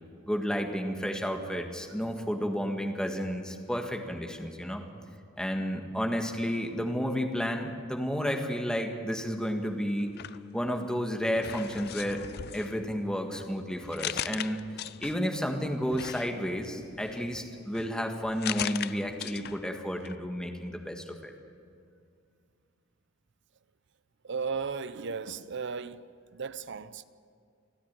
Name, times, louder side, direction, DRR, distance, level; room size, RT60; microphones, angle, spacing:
voice 1, 0.2-4.8 5.4-10.1 10.5-12.2 12.5-14.6 15.0-21.3, equal, 5° left, 1.7 m, -31 dB
sound 1, 10.0-11.0 11.3-15.4 15.9-19.8 20.0-20.2, left 10 dB, 55° left, 0.4 m, -40 dB
voice 2, 24.2-26.1 26.3-27.0, right 5 dB, 60° right, 0.7 m, -35 dB
29.0 x 10.0 x 8.9 m
head